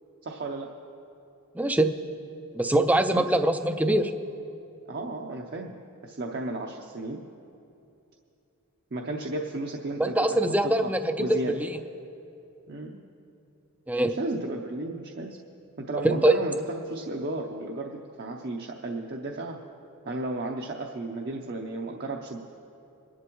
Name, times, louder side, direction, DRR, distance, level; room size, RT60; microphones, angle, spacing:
voice 1, 0.2-0.7 3.1-3.2 4.9-7.2 8.9-10.4 10.6-10.9 11.2-11.5 12.7-13.0 14.0-15.4 15.8-19.6 20.1-22.4, right 2 dB, 50° right, 0 dB, 0.7 m, -34 dB
voice 2, 1.6-1.9 2.6-4.1 10.0-11.7 13.9-14.1 16.0-16.4, right 1 dB, 5° right, 9 dB, 0.4 m, -23 dB
23.5 x 11.0 x 3.0 m, 2.8 s
head